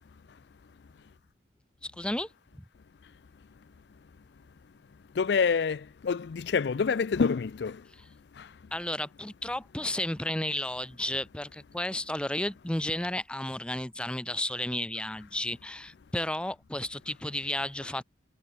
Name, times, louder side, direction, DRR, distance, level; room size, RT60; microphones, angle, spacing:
voice 1, 1.8-2.3 8.7-18.0, left 1 dB, 5° left, 0.6 m, -33 dB
voice 2, 5.2-7.8, left 5 dB, 65° left, 0.4 m, -27 dB
head